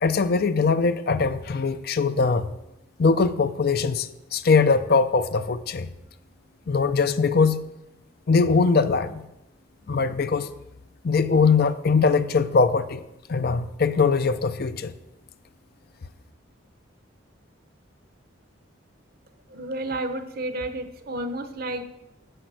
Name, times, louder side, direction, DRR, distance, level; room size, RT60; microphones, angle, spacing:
voice 1, 0.0-2.5 3.0-5.9 6.7-7.6 8.3-9.2 9.9-10.5 11.0-13.0 13.3-14.9, left 4 dB, 50° left, 0.5 m, -21 dB
voice 2, 19.5-21.8, right 1 dB, 45° right, 0.8 m, -31 dB
7.9 x 7.9 x 6.2 m
head